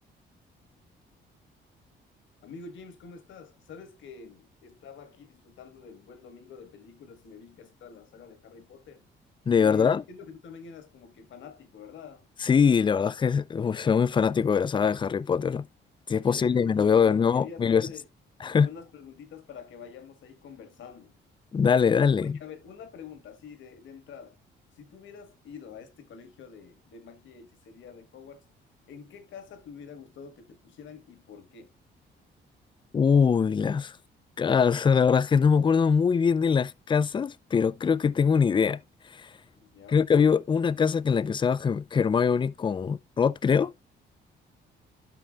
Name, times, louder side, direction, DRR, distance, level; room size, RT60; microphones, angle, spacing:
voice 1, 2.4-9.0 9.6-12.2 16.2-18.1 18.6-21.1 22.2-24.4 24.7-28.5 28.9-31.7 39.5-40.1, left 6 dB, 75° left, 1.5 m, -47 dB
voice 2, 9.5-10.0 12.4-15.7 16.1-17.9 18.4-18.7 21.5-22.4 32.9-34.0 34.4-38.8 39.0-39.3 39.9-43.7, left 6 dB, 25° left, 0.4 m, -23 dB
12.5 x 5.6 x 2.4 m
cardioid pair, 90°, 20 cm